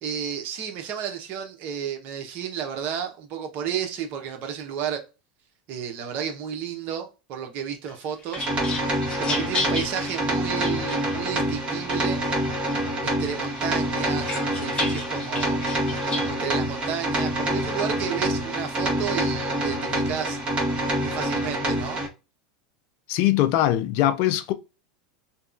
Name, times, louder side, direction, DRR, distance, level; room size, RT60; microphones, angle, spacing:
voice 1, 0.0-5.0 5.7-8.5 8.8-12.2 13.0-20.4 20.9-22.0, right 8 dB, 50° right, 0.8 m, -32 dB
sound 1, 7.9-11.4 11.9-12.8 13.2-16.3, left 3 dB, 25° left, 0.8 m, -34 dB
sound 2, 8.4-22.1, right 1 dB, 25° right, 1.3 m, -26 dB
voice 2, 23.1-24.5, left 13 dB, 60° left, 0.4 m, -21 dB
2.8 x 2.3 x 2.4 m
supercardioid pair, 110°, 4 cm